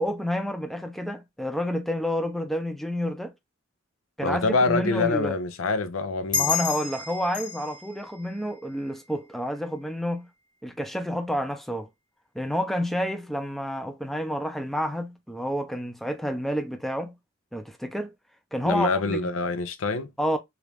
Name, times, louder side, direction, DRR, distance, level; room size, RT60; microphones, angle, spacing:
voice 1, 0.0-3.3 4.2-5.4 6.3-10.3 10.6-11.9 12.3-17.1 17.5-18.1 18.5-19.3 20.2-20.4, equal, ahead, 0.5 m, -29 dB
voice 2, 4.2-6.5 18.6-20.1, left 3 dB, 85° left, 0.5 m, -25 dB
sound 1, 6.3-9.4, left 6 dB, 20° left, 0.8 m, -31 dB
2.9 x 2.4 x 3.4 m
head